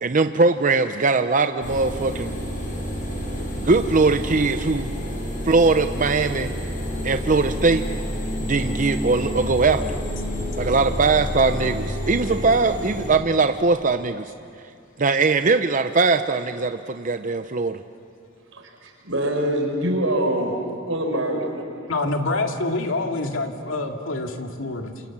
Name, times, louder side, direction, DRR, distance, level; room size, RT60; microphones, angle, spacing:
voice 1, 0.0-2.4 3.6-4.9 5.4-6.5 7.0-7.9 8.4-10.0 10.6-14.3 15.0-17.8, right 3 dB, 40° right, 8 dB, 0.7 m, -20 dB
sound 1, 1.6-13.1, equal, 45° left, 6.2 m, -29 dB
voice 2, 18.5-20.6 20.9-21.7, right 1 dB, 85° right, 2 dB, 5.3 m, -24 dB
voice 3, 21.9-25.0, left 2 dB, 80° left, 3 dB, 2.4 m, -26 dB
29.0 x 27.0 x 7.4 m, 2.5 s
head